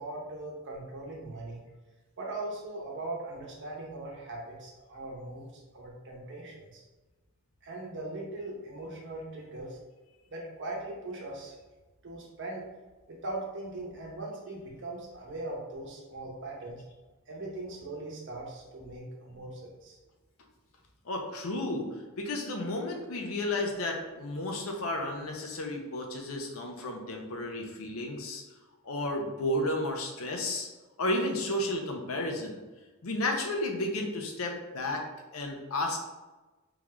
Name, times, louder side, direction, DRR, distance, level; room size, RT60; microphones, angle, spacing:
voice 1, 0.0-1.6 2.2-6.8 7.6-9.8 10.3-11.5 12.0-12.7 13.1-16.8 17.3-20.0, right 2 dB, 60° right, -2 dB, 0.9 m, -40 dB
voice 2, 21.1-21.9 22.2-28.4 28.8-30.7 31.0-32.6 33.0-35.0 35.3-36.0, left 1 dB, 75° left, 2 dB, 0.6 m, -32 dB
3.7 x 2.3 x 3.0 m, 1.2 s
head